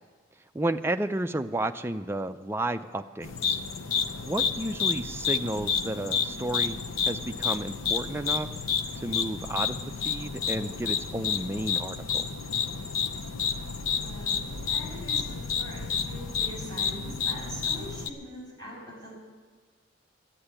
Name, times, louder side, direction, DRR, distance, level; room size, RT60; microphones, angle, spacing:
voice 1, 0.5-3.6 4.3-6.8 7.0-8.5 9.0-12.3, right 1 dB, 10° right, 7 dB, 0.4 m, -32 dB
sound 1, 3.2-18.1, left 6 dB, 90° left, 0.7 m, -30 dB
voice 2, 13.8-19.1, equal, 20° left, -5 dB, 5.9 m, -43 dB
12.0 x 8.9 x 9.9 m, 1.5 s
head